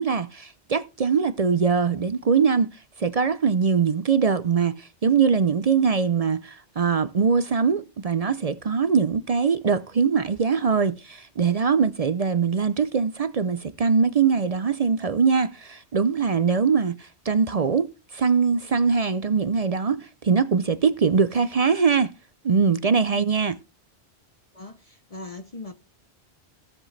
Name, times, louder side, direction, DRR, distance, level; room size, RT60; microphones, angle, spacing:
voice 1, 0.0-22.1 22.4-23.6, right 5 dB, 45° right, 0.5 m, -22 dB
voice 2, 24.5-25.7, left 2 dB, 40° left, 0.7 m, -40 dB
16.0 x 7.5 x 3.2 m
omnidirectional pair, 1.1 m